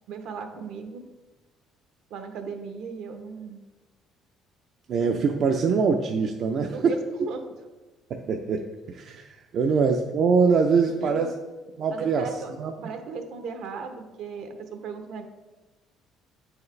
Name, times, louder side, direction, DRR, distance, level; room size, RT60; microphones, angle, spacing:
voice 1, 0.1-1.0 2.1-3.6 6.6-7.0 7.3-7.4 10.8-11.3 11.9-12.5 12.8-15.2, right 5 dB, 75° right, 6 dB, 0.8 m, -36 dB
voice 2, 4.9-6.7 8.1-11.3 11.8-12.3 12.6-12.9, right 5 dB, 50° right, 3 dB, 0.4 m, -24 dB
8.8 x 4.7 x 3.2 m, 1.2 s
cardioid pair, 120°, 0 cm